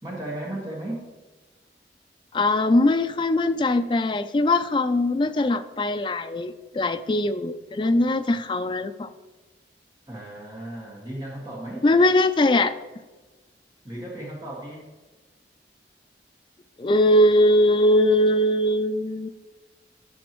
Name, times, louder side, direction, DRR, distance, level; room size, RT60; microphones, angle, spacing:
voice 1, 0.0-1.0 10.1-11.8 13.8-14.8, right 1 dB, 20° right, -5 dB, 1.8 m, -35 dB
voice 2, 2.3-9.1 11.8-12.7 16.8-19.3, left 1 dB, 25° left, 9 dB, 0.3 m, -21 dB
10.5 x 7.0 x 3.1 m, 1.2 s
head